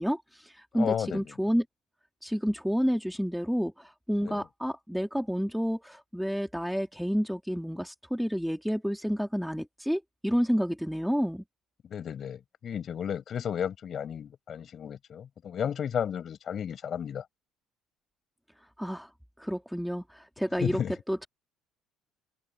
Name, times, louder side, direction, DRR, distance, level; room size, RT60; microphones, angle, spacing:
voice 1, 0.0-1.6 2.2-11.4 18.8-19.1 19.4-20.8 21.1-21.3, equal, ahead, 2.1 m, -30 dB
voice 2, 0.7-1.3 4.2-4.4 11.9-17.2 20.6-21.0, left 8 dB, 40° left, 5.1 m, -33 dB
open air
cardioid pair, 135°, 0 cm